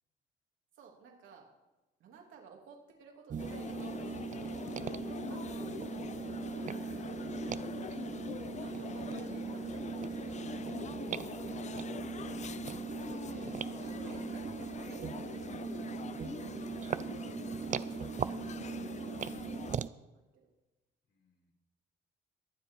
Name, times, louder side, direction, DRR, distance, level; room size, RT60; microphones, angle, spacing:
voice 1, 0.7-1.5 2.0-6.5 8.6-10.7 13.1-15.7 18.5-18.9 19.1-20.5, right 5 dB, 80° right, 0 dB, 3.0 m, -55 dB
sound 1, 3.3-19.9, right 6 dB, 40° right, 0.5 m, -39 dB
sound 2, 3.4-19.8, left 8 dB, 35° left, 0.4 m, -44 dB
voice 2, 6.8-7.4 16.0-17.2 21.0-21.5, left 3 dB, 60° left, 1 dB, 3.9 m, -65 dB
22.0 x 7.8 x 4.8 m, 1.1 s
cardioid pair, 90°, 20 cm